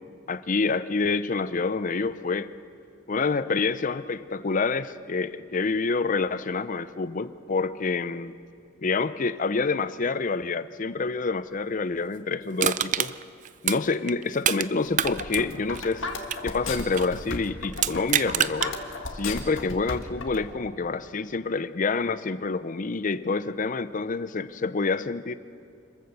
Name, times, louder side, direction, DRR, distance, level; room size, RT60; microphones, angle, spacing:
voice 1, 0.3-2.5 3.1-8.3 8.8-13.1 13.6-16.0 16.4-18.7 19.1-25.3, left 4 dB, 45° left, 14 dB, 0.6 m, -27 dB
Crushing, 12.6-14.7 14.9-17.2 17.7-18.7 19.2-19.3, right 10 dB, 40° right, 0.4 m, -27 dB
sound 1, 14.9-20.4, left 3 dB, 75° left, 1.8 m, -34 dB
26.5 x 14.5 x 7.0 m, 2.4 s
head